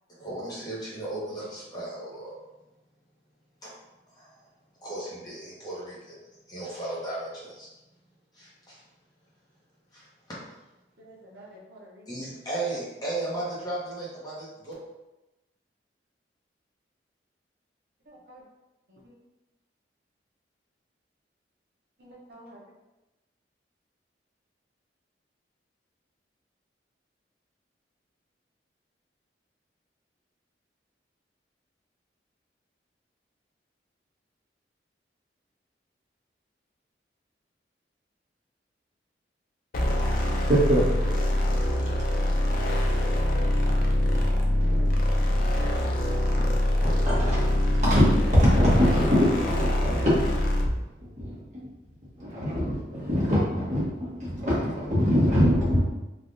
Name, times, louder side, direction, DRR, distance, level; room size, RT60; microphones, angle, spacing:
voice 1, 0.2-2.3 3.6-3.7 4.2-4.3 4.8-6.2 6.5-7.7 8.4-8.8 9.9-10.0 10.3-10.4 12.1-14.7, right 2 dB, 20° left, -8 dB, 0.9 m, -35 dB
voice 2, 11.0-12.3 18.1-18.4 18.9-19.0 22.0-22.6, right 1 dB, 60° right, -5 dB, 0.7 m, -50 dB
sound 1, 39.7-50.8, left 1 dB, 50° left, 0.4 m, -24 dB
voice 3, 40.3-42.5 42.8-43.8 44.1-45.1 45.4-45.9 46.3-50.4 51.2-51.4 52.2-55.9, equal, 40° right, -8 dB, 1.1 m, -25 dB
3.2 x 2.4 x 2.6 m, 1.0 s
head